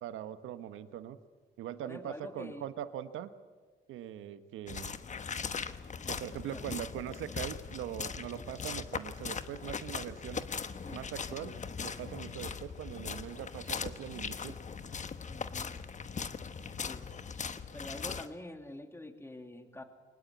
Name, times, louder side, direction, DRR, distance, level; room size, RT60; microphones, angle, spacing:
voice 1, 0.0-1.2 1.6-3.3 3.9-4.9 6.1-10.5 10.9-14.6, right 11 dB, 90° right, 12 dB, 1.2 m, -41 dB
voice 2, 1.8-2.7 6.5-6.6 10.8-11.1 15.3-15.8 16.9-17.1 17.7-19.8, left 1 dB, 10° left, 7 dB, 2.5 m, -46 dB
sound 1, 4.7-18.3, left 5 dB, 40° left, 1.2 m, -40 dB
23.0 x 19.5 x 8.4 m, 1.5 s
cardioid pair, 90°, 20 cm